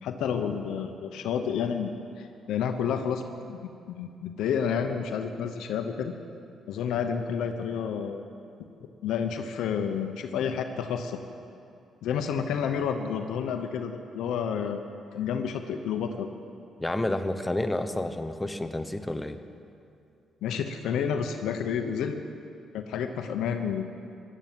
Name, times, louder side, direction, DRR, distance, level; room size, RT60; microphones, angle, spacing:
voice 1, 0.0-1.9 2.2-6.1 6.7-8.2 9.0-11.2 12.0-16.3 20.4-22.2 22.7-23.8, left 7 dB, 85° left, 6 dB, 0.9 m, -30 dB
voice 2, 16.8-19.4, left 1 dB, 10° left, 9 dB, 1.0 m, -30 dB
16.5 x 11.5 x 7.6 m, 2.5 s
cardioid pair, 90°, 0 cm